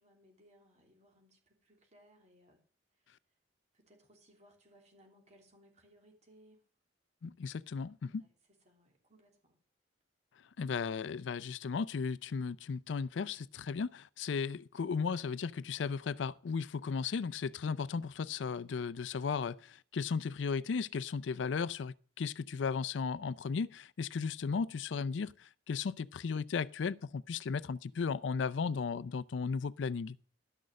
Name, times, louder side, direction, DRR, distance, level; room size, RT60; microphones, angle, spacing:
voice 1, 0.0-2.6 2.9-3.1 3.7-6.7 8.0-9.6, equal, 40° right, 3.1 m, -65 dB
voice 2, 7.2-8.2 10.6-30.2, left 5 dB, 75° left, 0.4 m, -35 dB
12.0 x 6.4 x 6.4 m
head